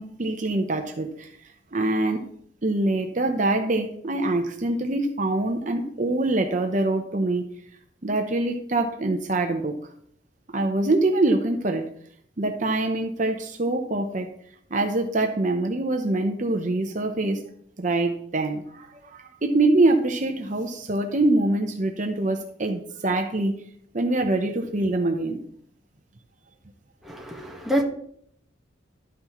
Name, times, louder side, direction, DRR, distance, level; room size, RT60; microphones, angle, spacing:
voice 1, 0.0-1.3 1.7-2.2 2.6-7.4 8.0-9.7 10.5-11.8 12.4-14.3 14.7-17.4 17.8-23.5 23.9-25.4, right 2 dB, 40° right, 0.8 m, -24 dB
voice 2, 27.0-27.8, equal, ahead, 1.4 m, -26 dB
12.0 x 9.3 x 3.1 m
head